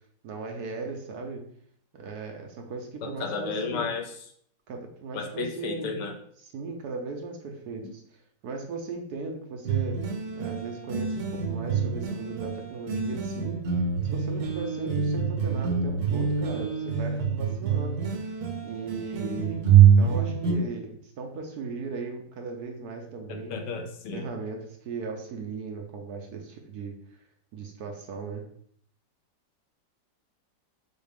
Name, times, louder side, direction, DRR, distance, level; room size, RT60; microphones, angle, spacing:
voice 1, 0.2-1.4 1.9-3.9 4.7-6.0 6.4-8.0 8.4-10.0 10.4-13.8 14.1-18.3 18.6-19.6 20.0-23.6 24.1-26.9 27.5-28.4, right 4 dB, 65° right, 2 dB, 1.1 m, -37 dB
voice 2, 3.0-4.0 5.1-6.1 23.3-24.2, left 4 dB, 75° left, 4 dB, 1.3 m, -33 dB
sound 1, 9.6-20.5, right 7 dB, 85° right, 1.5 m, -25 dB
6.3 x 2.4 x 3.4 m, 0.62 s
omnidirectional pair, 1.9 m